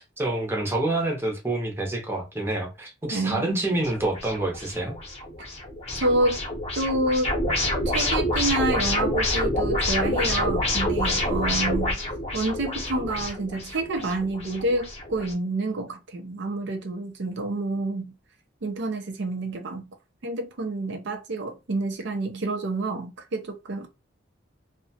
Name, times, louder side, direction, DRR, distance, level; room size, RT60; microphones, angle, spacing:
voice 1, 0.0-5.0, right 2 dB, 15° right, 0.7 m, -27 dB
voice 2, 3.0-3.6 6.0-6.4 6.7-7.4 7.9-12.0 12.3-18.1 18.6-19.9 20.2-23.9, right 2 dB, 65° right, 0.5 m, -28 dB
sound 1, 3.8-15.3, left 1 dB, 35° left, 0.8 m, -27 dB
2.7 x 2.1 x 2.7 m
head